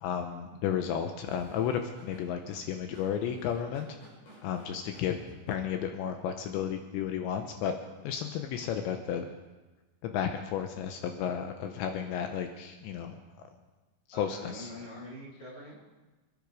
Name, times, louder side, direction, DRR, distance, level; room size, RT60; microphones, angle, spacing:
voice 1, 0.0-3.9 4.4-5.2 5.5-7.7 8.0-9.3 10.0-13.2 14.2-14.7, left 8 dB, 80° left, 5 dB, 3.1 m, -33 dB
Drum kit / Drum, 1.3-6.1, equal, 45° left, 7.3 m, -54 dB
voice 2, 14.1-15.8, left 1 dB, 10° left, -5 dB, 6.3 m, -45 dB
26.5 x 10.5 x 4.8 m, 1.2 s
omnidirectional pair, 5.3 m